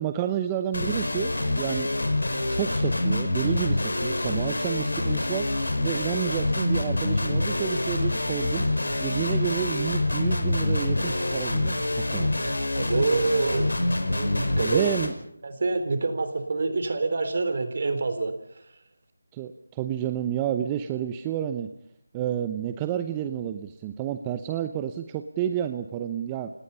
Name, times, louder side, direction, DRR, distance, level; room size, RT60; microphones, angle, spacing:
voice 1, 0.0-1.9 2.5-5.5 5.8-8.6 9.0-12.3 14.6-15.1 19.3-21.7 22.1-26.5, right 10 dB, 15° right, 9 dB, 0.8 m, -30 dB
sound 1, 0.7-15.1, left 2 dB, 85° left, 5.0 m, -26 dB
voice 2, 12.7-13.7 14.1-14.9 15.4-18.3, right 3 dB, 45° right, 9 dB, 3.6 m, -26 dB
29.0 x 18.0 x 5.6 m, 0.72 s
figure-of-eight pair, 165°, 0 cm